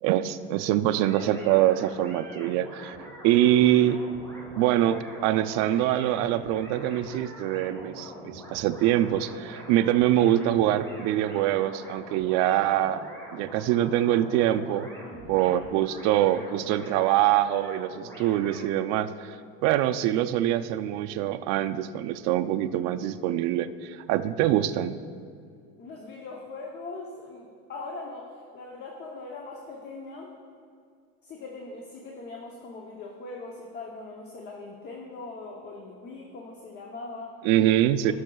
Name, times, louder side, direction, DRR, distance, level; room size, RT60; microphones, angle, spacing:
voice 1, 0.0-3.0 3.2-4.0 4.5-14.9 15.3-19.4 19.6-25.0 37.4-38.1, right 12 dB, 55° right, 10 dB, 0.4 m, -24 dB
sound 1, 0.9-18.7, right 1 dB, 10° left, 1.5 m, -44 dB
voice 2, 15.0-15.5 25.8-30.4 31.2-37.3 38.0-38.1, left 3 dB, 30° left, 0 dB, 0.8 m, -41 dB
17.0 x 6.3 x 2.3 m, 2.2 s
cardioid pair, 150°, 33 cm